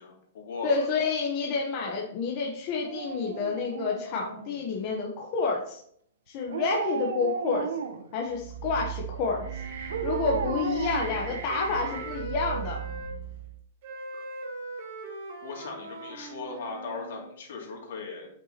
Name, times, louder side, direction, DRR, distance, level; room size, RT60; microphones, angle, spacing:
voice 1, 0.0-0.9 15.4-18.3, left 4 dB, 65° left, 0 dB, 2.4 m, -38 dB
voice 2, 0.6-5.8 6.3-7.7 8.1-9.6 10.0-12.8, left 4 dB, 30° left, -1 dB, 0.9 m, -29 dB
Dog, 2.7-4.8 6.5-8.2 9.9-12.0 12.4-12.5, right 7 dB, 90° right, 0.8 m, -35 dB
sound 1, 8.3-13.6, right 9 dB, 70° right, 1.4 m, -38 dB
Wind instrument woodwind instrument, 9.2-13.1 13.8-17.3, right 2 dB, 50° right, 1.6 m, -41 dB
9.0 x 5.7 x 2.9 m, 0.66 s
hypercardioid pair, 165°, 0 cm